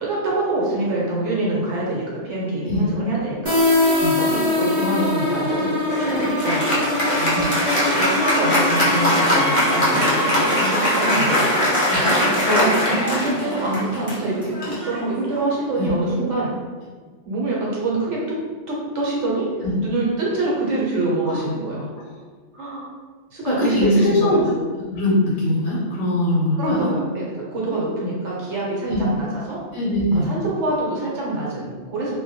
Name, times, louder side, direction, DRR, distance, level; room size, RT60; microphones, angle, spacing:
voice 1, 0.0-3.5 4.2-7.3 7.9-11.5 12.4-12.7 13.1-16.5 17.2-18.4 18.7-19.5 19.8-21.9 22.5-22.9 23.3-24.5 26.6-29.6 30.1-32.2, right 2 dB, 75° right, -5 dB, 1.0 m, -25 dB
sound 1, 3.5-13.0, left 2 dB, 20° right, 0.6 m, -23 dB
Applause, 5.9-15.7, left 1 dB, 40° left, 0.5 m, -21 dB
voice 2, 23.5-24.4 24.9-26.9 28.9-29.1 29.7-30.3, left 1 dB, 80° left, -6 dB, 0.9 m, -21 dB
2.2 x 2.1 x 2.7 m, 1.4 s
omnidirectional pair, 1.2 m